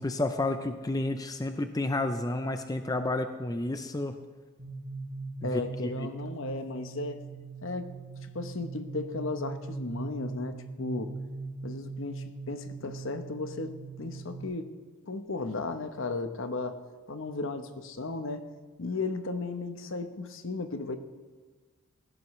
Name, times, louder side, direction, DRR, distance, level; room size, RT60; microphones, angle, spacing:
voice 1, 0.0-4.2 5.4-5.6 6.0-6.1, left 2 dB, 15° left, 8 dB, 0.5 m, -31 dB
sound 1, 4.6-14.4, right 3 dB, 50° right, 3.9 m, -41 dB
voice 2, 5.4-7.2 7.6-7.9 8.2-11.2 11.6-14.7 15.0-16.8 17.1-18.5 18.8-21.0, left 3 dB, 60° left, 9 dB, 1.0 m, -35 dB
18.5 x 15.5 x 3.2 m, 1.4 s
head